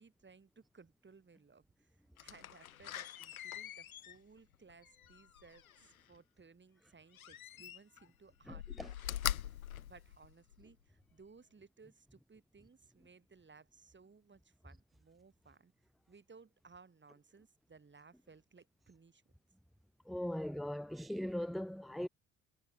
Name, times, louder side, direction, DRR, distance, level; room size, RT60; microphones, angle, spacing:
voice 1, 0.0-9.2 9.4-15.7 16.1-19.2 20.3-20.6 20.8-21.0, right 4 dB, 25° right, 6.6 m, -61 dB
Slam, 2.2-6.0 7.1-8.1 8.4-10.7 11.2-11.3, left 11 dB, 90° left, 0.8 m, -43 dB
voice 2, 8.5-8.9 20.1-22.1, left 1 dB, ahead, 0.4 m, -39 dB
figure-of-eight pair, 55°, 41 cm